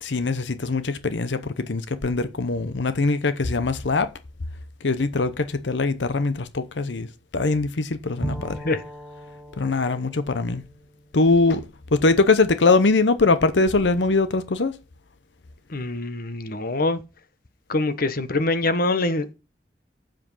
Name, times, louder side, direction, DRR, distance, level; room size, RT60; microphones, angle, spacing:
voice 1, 0.0-4.1 4.8-7.1 7.3-8.6 9.6-10.6 11.1-11.6 11.9-14.8, left 3 dB, 85° left, 0.8 m, -22 dB
Bowed string instrument, 8.2-11.9, right 1 dB, 5° left, 3.3 m, -38 dB
voice 2, 8.3-8.8 15.7-17.0 17.7-19.3, left 2 dB, 55° left, 1.1 m, -25 dB
7.7 x 7.6 x 5.5 m
head